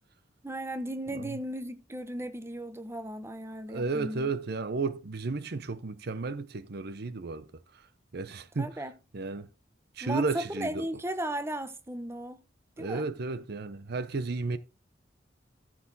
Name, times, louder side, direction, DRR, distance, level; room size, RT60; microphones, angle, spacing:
voice 1, 0.4-4.3 8.6-9.0 10.0-12.4 12.8-13.1, right 1 dB, 15° right, 0.9 m, -36 dB
voice 2, 3.7-7.5 8.1-8.7 9.1-9.5 10.0-10.9 12.8-14.6, right 3 dB, 60° right, 0.7 m, -33 dB
14.0 x 4.7 x 4.1 m
head